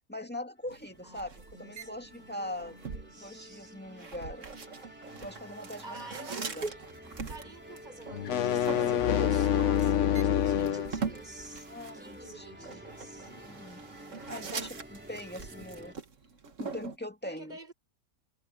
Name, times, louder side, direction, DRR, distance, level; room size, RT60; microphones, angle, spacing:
voice 1, 0.1-1.3 1.6-2.8 3.2-4.5 5.2-5.8 6.4-6.6 11.7-12.8 13.4-13.8 14.3-16.0 16.6-17.6, left 1 dB, 10° left, 2.1 m, -41 dB
sound 1, 0.6-15.9, equal, 10° right, 2.8 m, -50 dB
sound 2, 0.7-17.0, right 5 dB, 75° right, 1.9 m, -43 dB
voice 2, 1.0-3.8 5.8-6.8 7.2-13.3 17.2-17.7, right 2 dB, 35° right, 6.6 m, -47 dB
sound 3, 8.1-10.9, left 9 dB, 70° left, 1.1 m, -26 dB
omnidirectional pair, 1.3 m